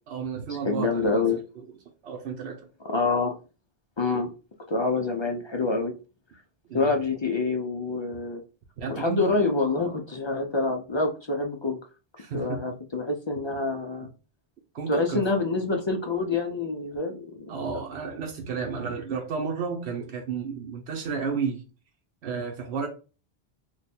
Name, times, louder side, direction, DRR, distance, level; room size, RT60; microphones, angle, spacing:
voice 1, 0.1-1.4 2.0-2.6 6.7-6.9 8.8-9.3 12.2-12.6 14.7-15.2 17.5-21.6 22.2-22.9, right 5 dB, 85° right, 1 dB, 1.0 m, -32 dB
voice 2, 0.6-1.4 2.9-3.4 4.0-4.3 4.7-5.9 6.7-8.4 8.9-11.8 12.3-14.1 14.9-17.7, left 3 dB, 45° left, 3 dB, 0.3 m, -26 dB
3.2 x 2.3 x 4.2 m, 0.34 s
omnidirectional pair, 1.1 m